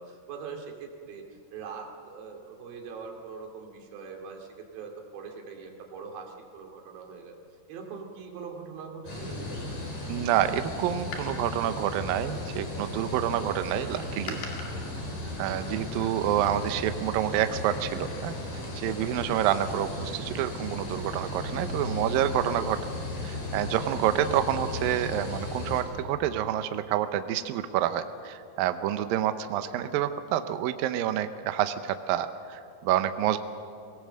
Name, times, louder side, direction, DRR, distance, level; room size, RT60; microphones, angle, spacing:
voice 1, 0.0-7.3 7.7-9.4, right 5 dB, 60° right, 1 dB, 3.9 m, -42 dB
sound 1, 9.1-25.8, left 2 dB, 40° left, 5.1 m, -36 dB
voice 2, 10.1-14.4 15.4-18.3 18.7-22.8 23.2-33.4, right 11 dB, 85° right, 9 dB, 2.0 m, -28 dB
Door, 11.1-12.7 13.7-16.6 17.5-18.6 18.9-19.0, left 4 dB, 60° left, 3.9 m, -45 dB
22.5 x 18.0 x 7.7 m, 2.6 s
omnidirectional pair, 5.2 m